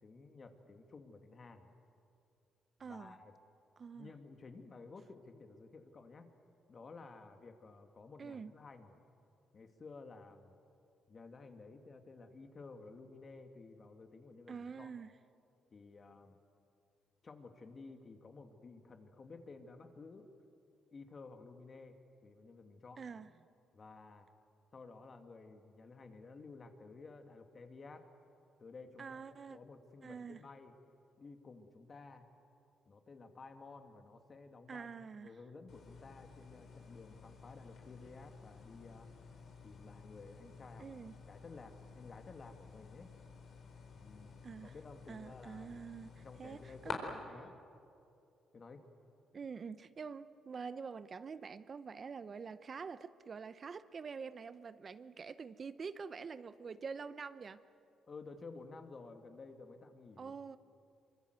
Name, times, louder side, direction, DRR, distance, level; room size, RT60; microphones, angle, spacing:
voice 1, 0.0-1.7 2.8-3.3 3.9-6.3 6.7-9.0 9.5-10.5 11.1-14.9 15.7-16.4 17.2-20.3 20.9-23.1 23.7-24.3 24.7-28.1 28.6-30.7 31.2-32.2 32.8-34.9 35.1-39.1 39.6-41.0 41.3-43.1 43.9-44.4 44.6-45.8 46.2-47.5 48.5-48.9 58.1-60.6, left 3 dB, 40° left, 5 dB, 2.4 m, -53 dB
voice 2, 2.8-3.1 3.8-4.1 8.2-8.5 14.5-15.1 23.0-23.3 29.0-29.6 30.0-30.4 34.7-35.3 40.8-41.1 44.4-44.7 45.1-47.0 49.3-57.6 60.2-60.6, right 5 dB, 40° right, 13 dB, 0.7 m, -46 dB
sound 1, 35.7-46.9, left 6 dB, 65° left, 4.3 m, -52 dB
25.0 x 24.0 x 8.2 m, 2.6 s
cardioid pair, 90°, 0 cm